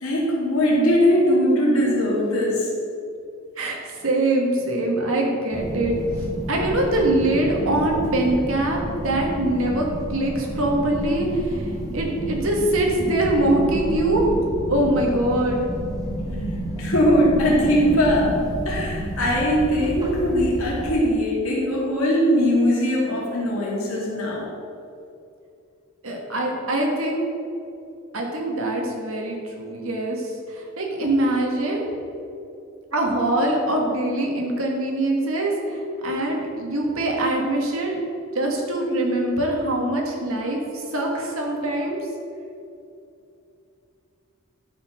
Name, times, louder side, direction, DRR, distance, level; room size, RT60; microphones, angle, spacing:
voice 1, 0.0-2.7 16.8-18.3 18.6-24.5, equal, 70° left, -4 dB, 2.6 m, -20 dB
voice 2, 3.6-14.2 14.7-15.7 26.0-27.2 28.1-31.9 32.9-38.0 38.3-42.1, right 1 dB, 70° right, 0 dB, 1.9 m, -23 dB
sound 1, 5.5-20.9, right 1 dB, 15° right, 1.5 m, -30 dB
11.5 x 5.1 x 6.4 m, 2.6 s
head